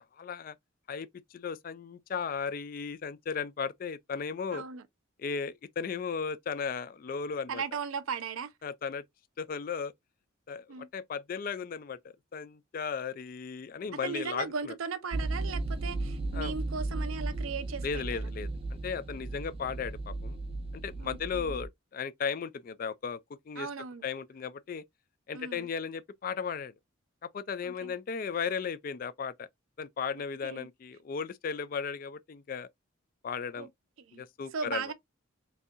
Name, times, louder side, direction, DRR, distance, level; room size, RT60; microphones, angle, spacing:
voice 1, 0.2-0.6 0.9-4.6 5.2-7.6 8.6-9.0 9.4-9.9 10.5-12.0 12.3-14.7 16.3-16.5 17.8-18.5 18.8-20.4 20.7-23.2 23.5-23.7 24.0-24.8 25.3-26.7 27.2-29.5 29.8-32.7 33.2-33.7 34.1-34.8, left 6 dB, 45° left, 0.3 m, -36 dB
voice 2, 4.5-4.8 7.5-8.5 10.7-10.9 14.0-18.3 21.0-21.6 23.6-24.0 25.3-25.7 27.6-27.9 30.4-30.7 33.6-33.7 34.1-34.2 34.5-34.9, right 5 dB, 90° right, 0.6 m, -37 dB
sound 1, 15.1-21.7, right 2 dB, 25° right, 0.4 m, -35 dB
3.8 x 2.7 x 2.4 m
head